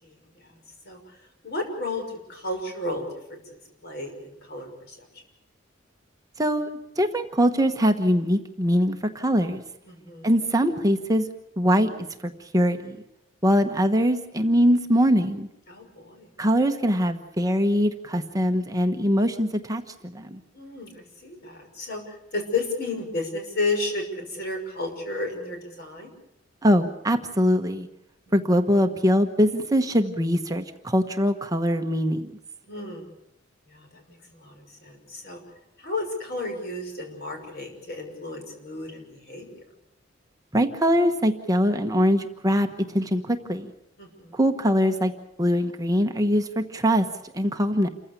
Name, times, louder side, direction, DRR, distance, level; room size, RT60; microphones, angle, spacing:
voice 1, 0.0-0.5 0.8-1.0 1.4-3.4 3.8-5.1 9.9-10.4 15.7-16.3 20.5-26.1 28.3-28.4 32.7-33.1 33.7-35.4 35.8-39.6 44.0-44.5, left 2 dB, 55° left, 4 dB, 6.1 m, -33 dB
voice 2, 6.4-9.6 10.2-11.3 11.6-11.9 12.2-13.0 13.4-15.5 16.4-20.4 26.6-27.9 28.3-32.3 40.5-43.7 44.3-45.1 45.4-47.1 47.3-47.9, equal, 20° right, 6 dB, 1.1 m, -22 dB
28.5 x 15.0 x 8.4 m, 0.83 s
head